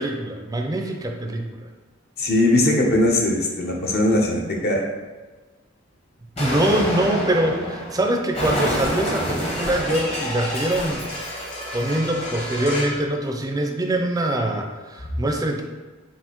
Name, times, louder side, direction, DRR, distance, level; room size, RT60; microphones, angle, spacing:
voice 1, 0.0-1.5 6.4-11.0 11.7-15.6, right 1 dB, 20° right, 3 dB, 0.4 m, -23 dB
voice 2, 2.2-4.8, left 1 dB, 55° left, 0 dB, 0.7 m, -20 dB
Explosion, 6.4-13.0, equal, 30° left, 0.9 m, -28 dB
5.5 x 2.5 x 3.0 m, 1.3 s
head